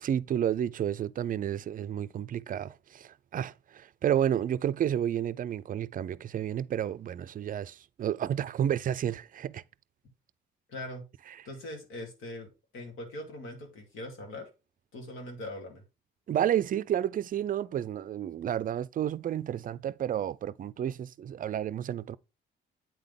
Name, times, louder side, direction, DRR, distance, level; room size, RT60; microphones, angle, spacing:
voice 1, 0.0-9.6 16.3-22.2, right 10 dB, 45° right, 0.4 m, -31 dB
voice 2, 10.7-11.0 11.4-14.5 14.9-15.8, left 1 dB, 85° left, 2.5 m, -41 dB
8.9 x 3.9 x 3.5 m
cardioid pair, 90°, 20 cm